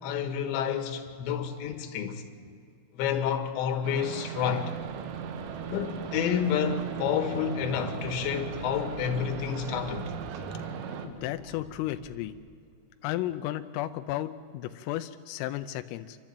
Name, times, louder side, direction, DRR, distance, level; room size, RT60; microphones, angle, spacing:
voice 1, 0.0-2.2 2.9-4.7 5.7-10.1, left 8 dB, 70° left, 3.5 m, -29 dB
sound 1, 3.8-11.1, right 7 dB, 85° right, 4.0 m, -38 dB
sound 2, 4.7-12.3, right 1 dB, 35° right, 2.1 m, -48 dB
voice 2, 11.0-12.3 13.0-16.2, left 14 dB, 90° left, 3.3 m, -33 dB
29.5 x 12.0 x 8.9 m
omnidirectional pair, 5.8 m